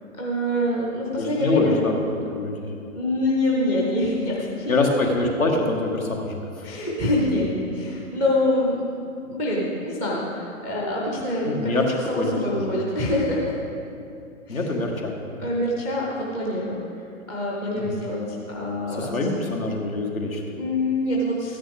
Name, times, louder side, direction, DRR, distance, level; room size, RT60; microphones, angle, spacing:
voice 1, 0.2-1.8 2.9-4.7 6.6-8.8 9.2-11.7 12.1-13.5 14.5-14.6 15.4-16.8 17.3-18.2 18.5-19.1 20.6-21.6, left 1 dB, 5° left, -5 dB, 0.4 m, -25 dB
voice 2, 1.2-2.0 2.3-2.7 4.6-6.7 11.4-12.7 14.5-15.5 17.8-18.0 18.9-20.4, left 2 dB, 75° left, 1 dB, 1.8 m, -25 dB
13.5 x 9.4 x 3.5 m, 2.6 s
figure-of-eight pair, 120°, 41 cm